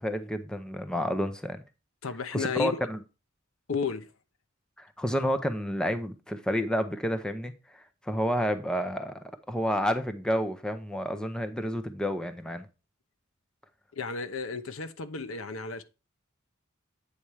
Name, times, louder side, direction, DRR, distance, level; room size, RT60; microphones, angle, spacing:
voice 1, 0.0-1.6 2.3-3.0 4.8-9.2 9.5-12.7, equal, 5° left, 0.6 m, -30 dB
voice 2, 2.0-2.9 3.7-4.1 13.9-15.8, left 4 dB, 70° left, 0.8 m, -33 dB
8.4 x 4.3 x 4.7 m
head